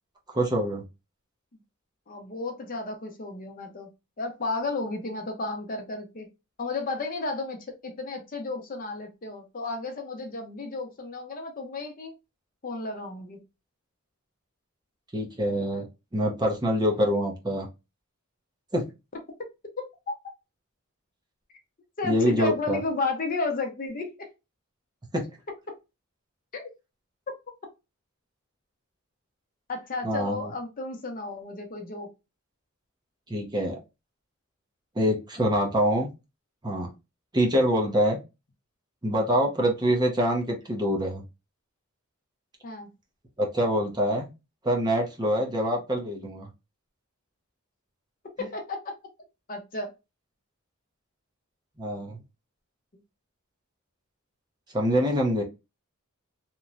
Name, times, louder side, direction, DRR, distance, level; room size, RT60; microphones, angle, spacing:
voice 1, 0.3-0.8 15.1-15.9 16.1-17.7 18.7-18.8 22.0-22.8 25.1-25.2 30.0-30.4 33.3-33.8 35.0-36.1 36.6-36.9 37.3-38.2 39.0-41.2 43.4-44.3 44.6-46.5 51.8-52.2 54.7-55.4, equal, 20° right, 0.6 m, -25 dB
voice 2, 2.1-3.9 4.2-6.3 6.6-7.6 7.8-12.1 12.6-13.4 22.0-24.3 26.5-26.7 29.7-32.1 42.6-42.9 48.4-48.9 49.5-49.9, left 3 dB, 40° left, 0.6 m, -33 dB
2.9 x 2.1 x 2.4 m
head